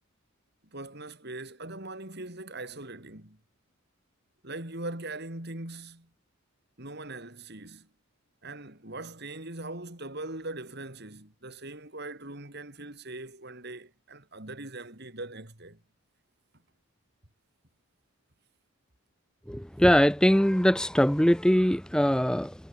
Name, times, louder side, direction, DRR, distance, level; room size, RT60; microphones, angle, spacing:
voice 1, 0.7-3.4 4.4-6.1 6.8-7.9 8.4-15.8, right 2 dB, 50° right, 3.8 m, -41 dB
voice 2, 19.5-22.5, equal, 5° left, 0.7 m, -22 dB
head